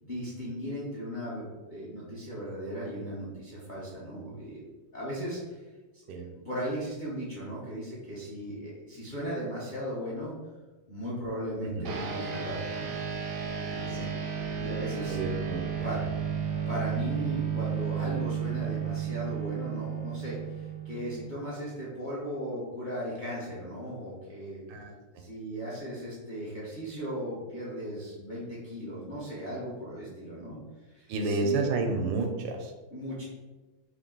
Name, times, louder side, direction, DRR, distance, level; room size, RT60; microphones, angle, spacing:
voice 1, 0.0-4.7 4.9-5.6 6.1-10.3 10.9-12.9 13.5-14.0 14.4-15.2 15.8-16.0 16.7-24.6 25.2-30.6 30.9-31.7 32.9-33.2, equal, 45° left, -7 dB, 0.6 m, -37 dB
sound 1, 11.8-21.6, right 7 dB, 70° right, 0.8 m, -33 dB
voice 2, 13.8-14.2 15.1-15.9 24.7-24.9 31.1-32.7, right 3 dB, 85° right, 3 dB, 1.3 m, -31 dB
3.4 x 2.5 x 3.7 m, 1.2 s
omnidirectional pair, 2.0 m